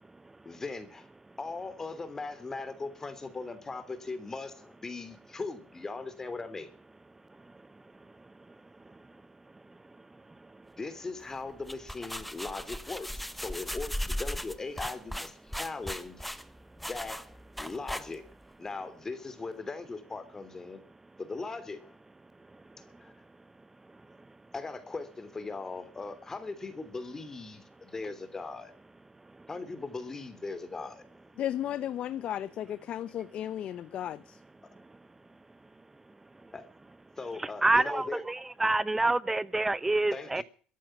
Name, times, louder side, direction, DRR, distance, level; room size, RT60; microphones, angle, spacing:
voice 1, 0.4-1.1 1.4-6.7 10.8-13.1 13.3-16.3 16.8-18.2 18.6-20.8 21.2-22.0 23.0-23.1 24.5-28.7 29.5-31.0 36.5-36.6 37.2-38.2 40.1-40.4, left 3 dB, 20° left, 3.2 m, -39 dB
sound 1, 11.5-18.4, equal, ahead, 1.1 m, -37 dB
voice 2, 31.4-34.4, left 11 dB, 55° left, 0.8 m, -34 dB
voice 3, 37.4-40.4, right 2 dB, 15° right, 0.7 m, -27 dB
14.0 x 11.0 x 7.4 m
supercardioid pair, 100°, 2 cm